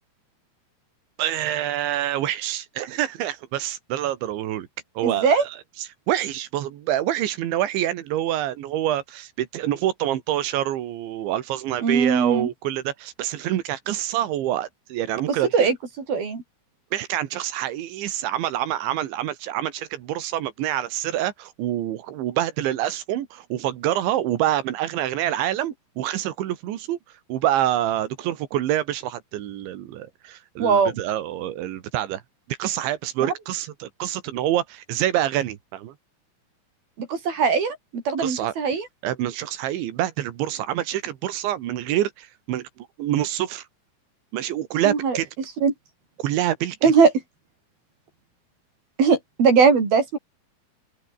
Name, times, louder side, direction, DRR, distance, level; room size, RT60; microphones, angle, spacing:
voice 1, 1.2-4.7 5.0-15.7 16.9-32.2 32.5-35.9 38.2-38.5 39.0-43.7 44.3-45.3 46.2-46.9, right 12 dB, 90° right, 4.2 m, -26 dB
voice 2, 5.0-5.4 11.8-12.5 15.5-15.8 16.1-16.4 30.6-30.9 33.2-33.3 37.0-38.8 44.9-45.2 45.6-45.7 46.8-47.1 49.0-50.2, right 5 dB, 55° right, 7.6 m, -20 dB
omnidirectional pair, 5.1 m